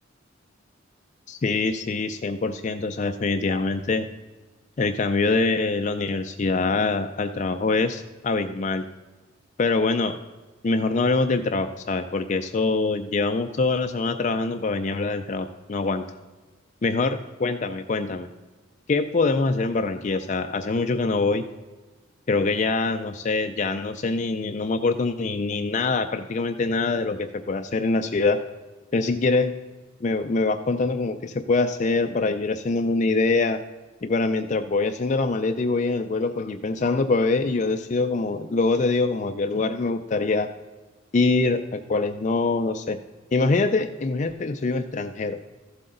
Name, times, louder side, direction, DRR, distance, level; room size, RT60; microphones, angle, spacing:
voice 1, 1.3-4.1 4.8-8.9 9.6-10.1 10.6-16.0 16.8-18.3 18.9-21.5 22.3-28.4 28.9-29.5 30.0-33.6 34.0-40.5 41.1-43.0 43.3-45.4, left 3 dB, 40° left, 7 dB, 0.4 m, -24 dB
14.0 x 7.7 x 3.8 m, 1.3 s
head